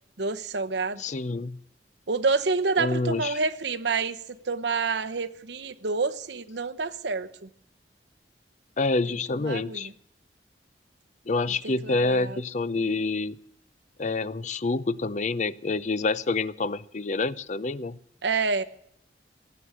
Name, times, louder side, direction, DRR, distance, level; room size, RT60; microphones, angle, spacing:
voice 1, 0.2-1.0 2.1-4.2 4.4-7.5 9.4-9.9 11.8-12.4 18.2-18.6, right 4 dB, 80° right, 10 dB, 0.9 m, -28 dB
voice 2, 1.0-1.6 2.8-3.4 8.8-9.9 11.3-13.3 14.0-18.0, left 3 dB, 40° left, 17 dB, 0.5 m, -27 dB
18.0 x 7.7 x 9.6 m, 0.73 s
head